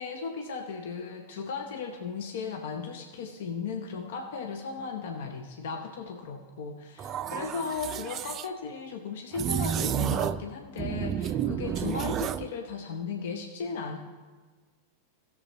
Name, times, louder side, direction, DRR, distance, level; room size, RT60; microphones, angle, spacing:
voice 1, 0.0-14.0, left 5 dB, 55° left, 5 dB, 0.9 m, -36 dB
sound 1, 7.0-8.5 9.3-10.5 10.8-12.5, right 9 dB, 30° right, 0.3 m, -30 dB
17.0 x 7.1 x 4.0 m, 1.4 s
figure-of-eight pair, 90°, 0 cm